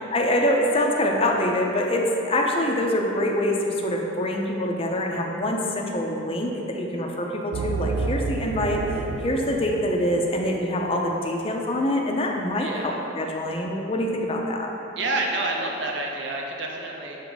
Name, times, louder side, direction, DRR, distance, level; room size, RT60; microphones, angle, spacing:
voice 1, 0.1-14.7, left 1 dB, 30° left, 0 dB, 0.5 m, -25 dB
sound 1, 7.5-10.9, right 4 dB, 85° right, 0.3 m, -31 dB
voice 2, 12.6-13.0 15.0-17.2, right 2 dB, 65° right, 0 dB, 0.7 m, -28 dB
7.1 x 3.5 x 3.9 m, 3.0 s
head